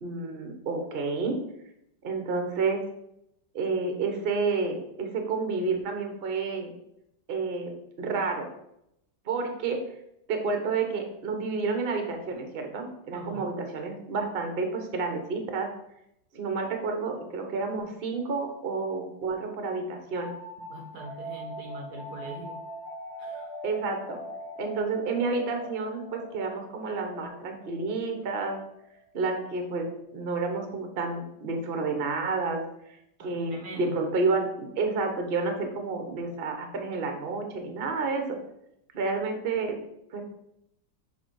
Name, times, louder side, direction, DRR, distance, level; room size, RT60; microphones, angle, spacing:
voice 1, 0.0-1.4 2.0-2.8 3.5-6.7 7.3-7.7 8.0-8.5 9.3-9.8 10.3-15.7 16.3-20.3 23.6-24.2 24.6-28.6 29.1-32.6 33.2-38.4 38.9-39.8 40.1-40.2, right 4 dB, 40° right, 4 dB, 0.9 m, -30 dB
voice 2, 13.1-13.5 20.6-22.6 23.2-23.5 33.2-34.0, right 2 dB, 65° right, 2 dB, 1.1 m, -42 dB
sound 1, 20.1-29.5, equal, 45° left, 1.0 m, -42 dB
7.1 x 3.6 x 4.5 m, 0.80 s
omnidirectional pair, 2.1 m